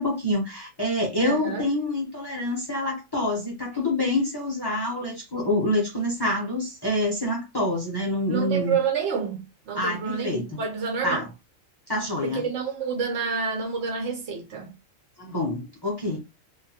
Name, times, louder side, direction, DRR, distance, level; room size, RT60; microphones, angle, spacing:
voice 1, 0.0-8.8 9.7-10.6 11.0-11.3 11.9-12.5 15.2-16.2, left 1 dB, 20° left, 0.7 m, -26 dB
voice 2, 1.2-1.7 8.3-11.3 12.2-14.7, right 6 dB, 65° right, 1.1 m, -28 dB
2.8 x 2.2 x 2.8 m
omnidirectional pair, 1.4 m